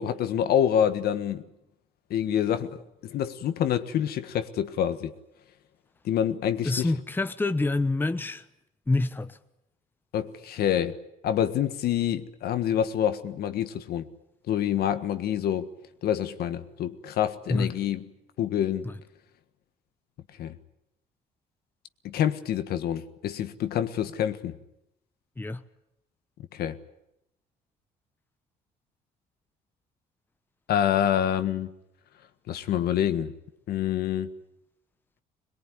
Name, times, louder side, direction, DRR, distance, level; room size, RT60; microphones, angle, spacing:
voice 1, 0.0-1.4 2.1-5.1 6.0-6.9 10.1-11.0 11.2-14.0 14.5-15.7 16.0-18.0 18.4-18.9 20.4-20.6 22.0-24.6 26.5-26.8 30.7-31.7 32.5-33.3 33.7-34.3, left 10 dB, 65° left, 1.6 m, -27 dB
voice 2, 6.6-8.4 8.9-9.4 17.5-17.7 18.8-18.9 25.4-25.6, left 2 dB, 10° left, 1.0 m, -27 dB
22.0 x 21.5 x 9.7 m
cardioid pair, 110°, 17 cm